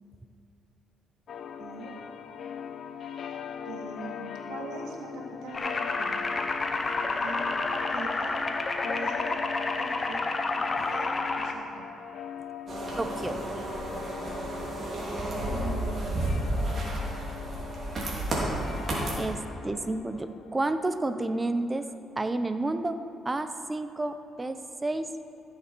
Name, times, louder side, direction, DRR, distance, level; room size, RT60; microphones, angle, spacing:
sound 1, 1.3-21.0, left 7 dB, 60° left, 0.5 m, -41 dB
voice 1, 1.6-2.0 3.7-6.2 7.2-7.5 7.9-8.4 8.8-9.2 9.8-10.3 10.9-11.9 15.5-17.0, right 3 dB, 85° right, 0 dB, 1.6 m, -42 dB
sound 2, 5.5-11.5, left 3 dB, 30° left, 0.8 m, -29 dB
sound 3, 12.7-19.2, right 1 dB, 45° right, 2.9 m, -31 dB
voice 2, 13.0-13.4 19.2-21.9 22.2-23.0 23.2-25.1, right 2 dB, 20° right, 9 dB, 0.6 m, -30 dB
15.0 x 6.7 x 4.5 m, 2.7 s
cardioid pair, 90°, 0 cm